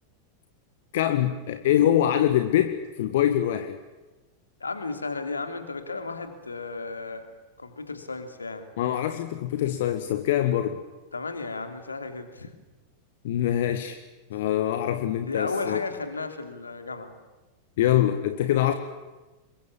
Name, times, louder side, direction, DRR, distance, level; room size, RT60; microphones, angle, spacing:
voice 1, 0.9-3.8 8.8-10.8 13.2-14.0 14.3-15.8 17.8-18.7, left 11 dB, 55° left, 8 dB, 1.6 m, -24 dB
voice 2, 4.6-7.3 7.6-8.7 11.1-12.5 15.2-17.1, left 3 dB, 75° left, 8 dB, 3.1 m, -34 dB
27.0 x 23.0 x 8.7 m, 1.1 s
figure-of-eight pair, 90°, 0 cm